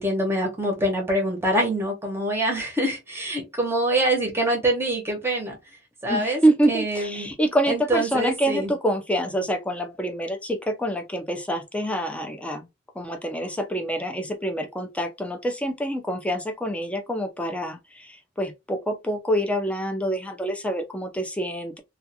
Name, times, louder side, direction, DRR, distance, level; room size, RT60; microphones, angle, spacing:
voice 1, 0.0-5.6 6.0-6.4 6.7-7.3 7.7-8.7, right 1 dB, 15° right, 0.8 m, -25 dB
voice 2, 6.1-12.6 13.0-21.8, right 1 dB, 5° left, 0.4 m, -26 dB
2.4 x 2.3 x 2.7 m
head